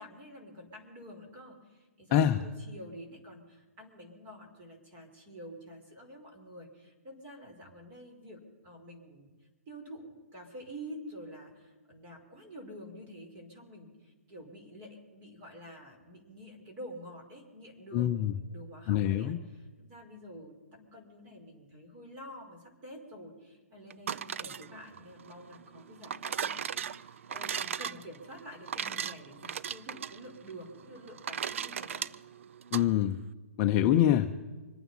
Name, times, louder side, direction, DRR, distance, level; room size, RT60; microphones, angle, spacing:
voice 1, 0.0-9.3 9.7-32.1, equal, 30° right, 2 dB, 5.2 m, -48 dB
voice 2, 17.9-18.3 18.9-19.4 32.7-33.2 33.6-34.3, left 11 dB, 30° left, 6 dB, 0.7 m, -25 dB
sound 1, 23.9-32.9, right 8 dB, 65° right, 0.5 m, -38 dB
26.5 x 9.1 x 5.7 m, 1.2 s
hypercardioid pair, 145°, 8 cm